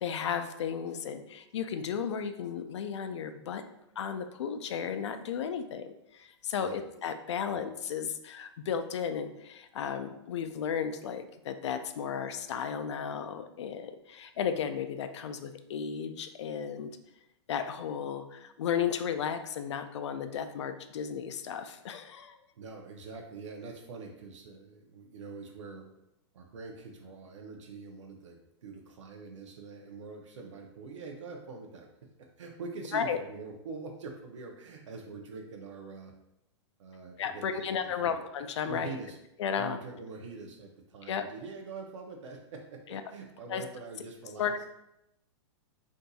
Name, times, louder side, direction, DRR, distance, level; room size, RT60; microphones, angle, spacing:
voice 1, 0.0-3.6 4.0-16.9 17.5-22.4 32.9-33.2 37.2-39.0 39.4-39.8 41.1-41.2 42.9-43.0 43.5-43.6 44.4-44.7, left 7 dB, 70° left, 8 dB, 0.4 m, -34 dB
voice 2, 22.6-25.9 26.3-36.1 36.8-37.7 38.0-38.2 38.7-39.2 39.5-44.7, right 4 dB, 85° right, 2 dB, 0.6 m, -44 dB
2.6 x 2.3 x 3.9 m, 0.83 s
hypercardioid pair, 175°, 15 cm